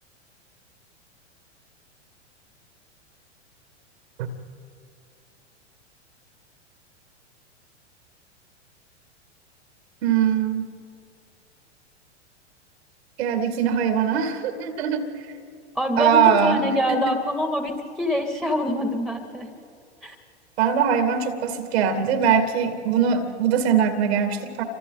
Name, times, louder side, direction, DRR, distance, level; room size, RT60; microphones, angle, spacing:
voice 1, 10.0-10.6 13.2-15.1 16.0-16.6 16.9-17.0 20.6-24.6, right 7 dB, 60° right, 7 dB, 2.3 m, -21 dB
voice 2, 15.7-19.5 20.0-20.2, left 1 dB, ahead, 5 dB, 2.3 m, -25 dB
29.0 x 25.5 x 4.0 m, 2.4 s
hypercardioid pair, 105°, 36 cm